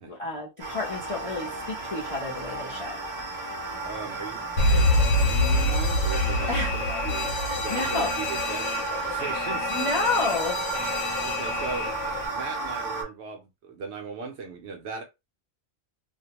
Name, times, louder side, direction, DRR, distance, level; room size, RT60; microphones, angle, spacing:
voice 1, 0.0-3.0 6.5-7.0 7.5-8.1 9.7-10.6, left 3 dB, 40° left, 0.5 m, -30 dB
sound 1, 0.6-13.0, right 3 dB, 30° right, 0.6 m, -33 dB
voice 2, 3.8-6.6 7.0-9.9 10.8-10.9 11.2-12.0 12.3-15.0, right 5 dB, 65° right, 0.8 m, -38 dB
Alarm, 4.6-12.3, left 2 dB, 85° left, 1.0 m, -26 dB
2.4 x 2.1 x 2.8 m
omnidirectional pair, 1.4 m